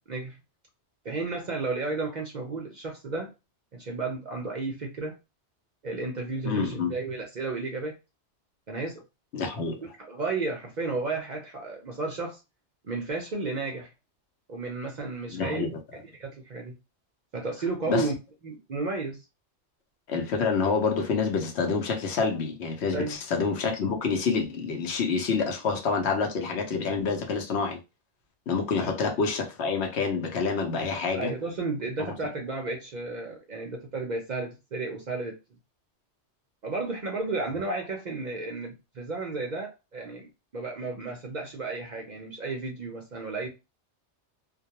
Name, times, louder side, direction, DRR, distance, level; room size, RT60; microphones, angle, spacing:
voice 1, 1.0-3.3 3.7-5.1 5.8-7.9 8.7-9.0 10.0-12.4 12.8-13.9 14.5-15.7 16.1-16.7 17.3-18.1 18.4-19.2 22.9-23.2 28.8-28.9 31.1-35.4 36.6-40.3 40.5-43.5, right 3 dB, 50° right, 0.6 m, -33 dB
voice 2, 6.4-6.9 9.3-9.8 15.3-15.8 17.9-18.1 20.1-27.8 28.5-31.3 32.0-32.1, left 5 dB, 70° left, 0.9 m, -27 dB
2.2 x 2.2 x 2.8 m
omnidirectional pair, 1.2 m